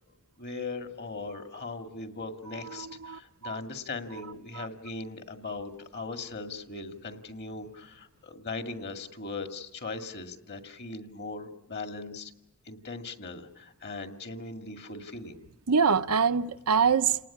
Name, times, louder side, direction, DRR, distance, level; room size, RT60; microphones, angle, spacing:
voice 1, 0.4-12.3 12.7-15.4, left 3 dB, 50° left, 2.2 m, -39 dB
voice 2, 2.7-3.6 4.5-4.7 15.7-17.2, right 6 dB, 80° right, 0.9 m, -25 dB
29.5 x 19.0 x 8.6 m
head